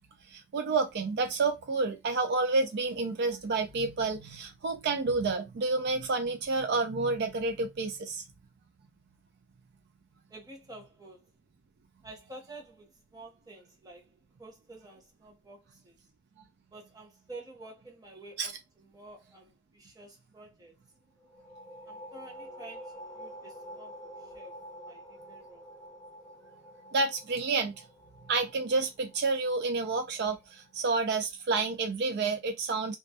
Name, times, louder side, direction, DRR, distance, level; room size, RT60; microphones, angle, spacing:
voice 1, 0.3-8.2 18.4-18.5 26.9-27.8 28.3-33.0, right 3 dB, 50° right, 0.4 m, -29 dB
voice 2, 10.3-11.3 12.0-14.0 14.4-16.0 16.7-20.8 21.9-25.6, right 2 dB, 20° right, 0.8 m, -50 dB
sound 1, 21.2-30.6, equal, 20° left, 0.6 m, -48 dB
2.3 x 2.0 x 2.7 m
head